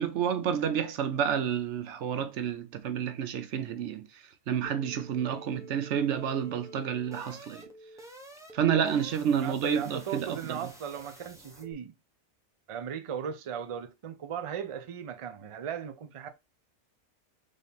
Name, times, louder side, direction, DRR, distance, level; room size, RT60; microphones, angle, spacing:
voice 1, 0.0-4.0 4.5-7.6 8.5-10.6, right 8 dB, 85° right, 1.0 m, -29 dB
sound 1, 4.6-11.7, equal, 5° right, 0.7 m, -50 dB
voice 2, 9.4-11.9 12.7-16.3, right 8 dB, 45° right, 0.4 m, -37 dB
3.8 x 3.4 x 4.0 m
omnidirectional pair, 1.2 m